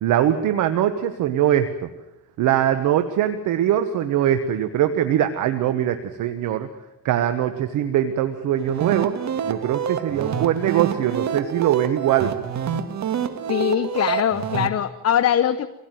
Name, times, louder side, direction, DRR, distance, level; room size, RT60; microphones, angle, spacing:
voice 1, 0.0-1.9 2.4-6.7 7.0-9.1 9.5-12.3, right 11 dB, 90° right, 9 dB, 1.3 m, -22 dB
sound 1, 8.6-14.7, right 8 dB, 65° right, 2.1 m, -27 dB
voice 2, 13.5-15.7, left 10 dB, 55° left, 10 dB, 1.0 m, -21 dB
24.0 x 17.5 x 9.2 m, 0.96 s
cardioid pair, 90°, 30 cm